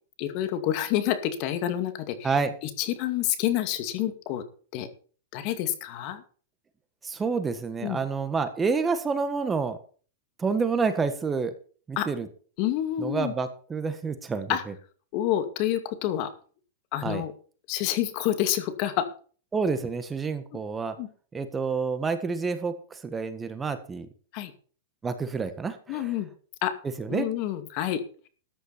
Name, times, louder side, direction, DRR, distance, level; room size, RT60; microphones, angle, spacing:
voice 1, 0.2-2.3 2.8-4.4 4.7-4.9 5.3-6.2 7.8-8.0 12.0-12.1 12.6-13.3 14.5-14.6 15.1-16.3 16.9-17.3 17.7-19.1 21.0-21.1 24.3-24.5 25.9-26.3 26.6-26.7 27.1-28.0, left 12 dB, 45° left, 10 dB, 2.3 m, -28 dB
voice 2, 7.0-9.8 10.4-11.5 11.9-12.3 13.0-14.6 17.0-17.2 19.5-20.9 21.3-24.1 25.0-26.1 27.0-27.3, right 5 dB, 15° right, 10 dB, 1.5 m, -28 dB
14.0 x 10.0 x 4.4 m, 0.41 s
hypercardioid pair, 135°, 0 cm